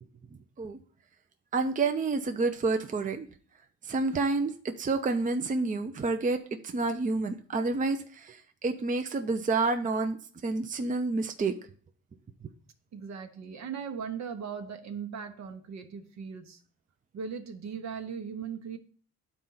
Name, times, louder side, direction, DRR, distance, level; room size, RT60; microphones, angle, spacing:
voice 1, 1.5-3.3 3.9-6.4 6.7-8.4 8.6-10.2 10.4-11.5, right 3 dB, 25° right, 7 dB, 0.6 m, -29 dB
voice 2, 12.9-16.6 17.1-18.8, right 6 dB, 65° right, 7 dB, 1.1 m, -38 dB
11.0 x 4.3 x 3.9 m, 0.44 s
cardioid pair, 90°, 30 cm